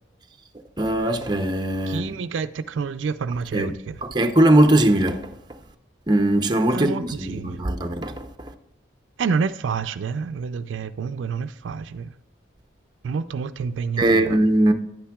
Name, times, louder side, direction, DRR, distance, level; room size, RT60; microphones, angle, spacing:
voice 1, 0.8-2.1 3.5-3.7 4.0-5.3 6.1-8.3 14.0-14.7, right 1 dB, 20° right, 0.6 m, -20 dB
voice 2, 1.9-4.0 6.7-7.6 9.2-12.1 13.0-14.4, right 5 dB, 80° right, 0.4 m, -28 dB
10.5 x 8.5 x 2.3 m
head